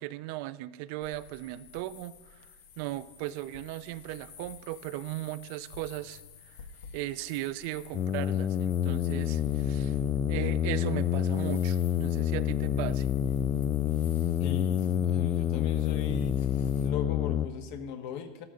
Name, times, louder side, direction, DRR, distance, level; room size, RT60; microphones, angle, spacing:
voice 1, 0.0-2.4 2.8-6.2 6.5-6.6 6.9-10.0 10.3-13.1, right 15 dB, 55° right, 15 dB, 0.4 m, -37 dB
Electric (louder), 1.0-16.9, left 6 dB, 85° left, 1.3 m, -51 dB
sound 1, 7.9-17.5, left 10 dB, 30° left, 0.4 m, -28 dB
voice 2, 14.4-16.4 16.8-18.4, left 7 dB, 60° left, 6 dB, 1.4 m, -38 dB
13.5 x 13.5 x 3.8 m, 1.2 s
supercardioid pair, 155°, 0 cm